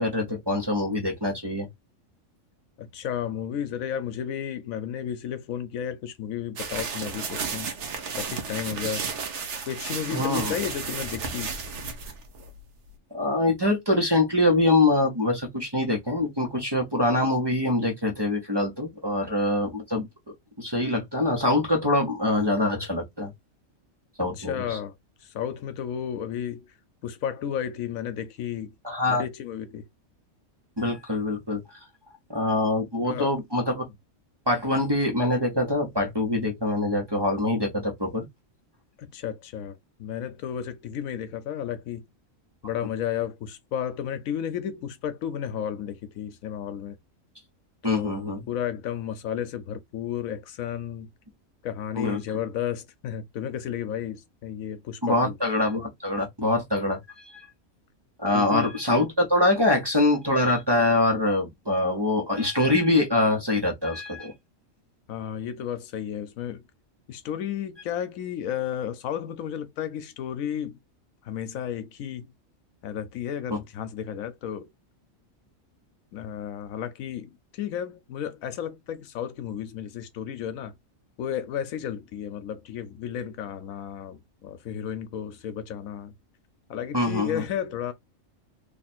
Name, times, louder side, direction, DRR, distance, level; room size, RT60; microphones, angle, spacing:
voice 1, 0.0-1.7 10.1-10.5 13.1-20.1 20.6-23.3 24.2-24.8 28.8-29.2 30.8-31.6 32.3-33.8 34.5-38.3 47.8-48.4 52.0-52.2 55.0-57.5 58.2-64.3 73.5-73.6 86.9-87.4, left 2 dB, 20° right, 0.8 m, -24 dB
voice 2, 2.8-7.7 8.1-9.1 9.7-11.5 24.4-24.9 25.2-26.7 27.0-28.7 29.1-29.8 32.9-33.3 39.0-42.0 42.6-47.0 47.8-51.1 51.6-55.4 58.3-58.7 65.1-66.6 67.1-70.8 71.2-72.3 72.8-74.7 76.1-80.7 81.2-86.1 86.7-87.9, left 9 dB, 80° left, 1.1 m, -33 dB
sound 1, 6.6-12.9, right 5 dB, 60° right, 1.1 m, -33 dB
3.2 x 2.4 x 4.2 m
omnidirectional pair, 1.4 m